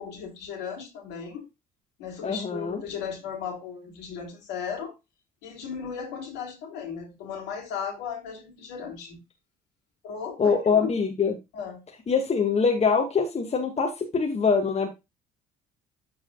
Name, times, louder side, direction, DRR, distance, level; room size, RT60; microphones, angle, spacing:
voice 1, 0.0-1.5 2.0-4.9 5.4-9.2 10.0-10.9 11.5-11.8, left 7 dB, 65° left, 0 dB, 3.4 m, -36 dB
voice 2, 2.2-2.8 10.4-11.4 12.1-14.9, left 5 dB, 35° left, 0 dB, 2.1 m, -24 dB
14.0 x 4.8 x 2.4 m, 0.23 s
figure-of-eight pair, 50°, 20 cm